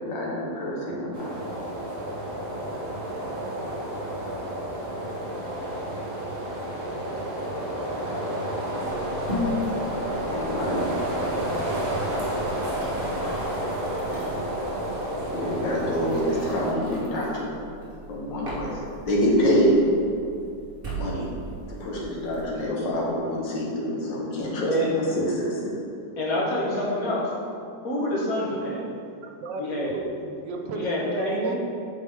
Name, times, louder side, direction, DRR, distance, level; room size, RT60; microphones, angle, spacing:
voice 1, 0.0-1.3 10.3-10.8 15.3-17.6 18.1-19.8 20.9-21.3 21.7-25.7, equal, 85° left, -4 dB, 1.9 m, -26 dB
sound 1, 1.1-16.7, right 1 dB, 50° right, 1.5 m, -30 dB
sound 2, 8.8-22.6, left 1 dB, 35° right, 1.5 m, -38 dB
voice 2, 24.7-25.0 26.2-27.4 27.8-28.9 29.6-29.9 30.7-31.6, left 1 dB, 55° left, -5 dB, 1.7 m, -26 dB
voice 3, 29.4-31.6, right 3 dB, 80° right, 3 dB, 1.4 m, -34 dB
8.0 x 4.5 x 3.6 m, 2.4 s
omnidirectional pair, 1.9 m